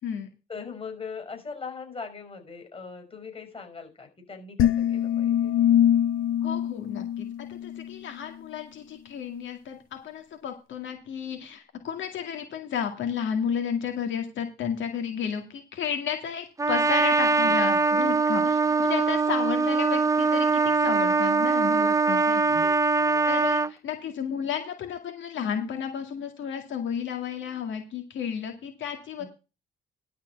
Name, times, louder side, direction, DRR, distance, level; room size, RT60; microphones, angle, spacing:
voice 1, 0.5-5.6 17.4-18.1 22.6-23.3 29.2-29.3, left 5 dB, 25° left, 5 dB, 5.7 m, -41 dB
sound 1, 4.6-7.9, left 10 dB, 90° left, 1.0 m, -23 dB
voice 2, 6.4-22.6 23.3-29.2, left 8 dB, 70° left, 4 dB, 2.2 m, -32 dB
Trumpet, 16.6-23.7, right 4 dB, 15° right, 0.7 m, -22 dB
12.5 x 4.6 x 8.1 m, 0.29 s
cardioid pair, 90°, 20 cm